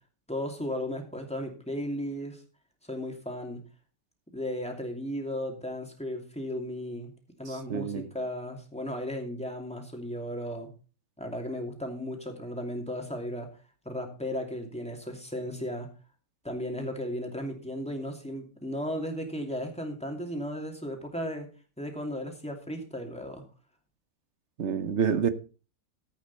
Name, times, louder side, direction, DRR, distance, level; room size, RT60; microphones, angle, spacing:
voice 1, 0.3-2.4 2.8-3.6 4.3-7.1 7.4-10.7 11.2-13.5 13.8-15.9 16.4-21.5 21.8-23.4, equal, 5° left, 2.5 m, -35 dB
voice 2, 7.5-8.1 24.6-25.3, right 7 dB, 55° right, 1.1 m, -28 dB
14.0 x 8.6 x 4.1 m
omnidirectional pair, 1.5 m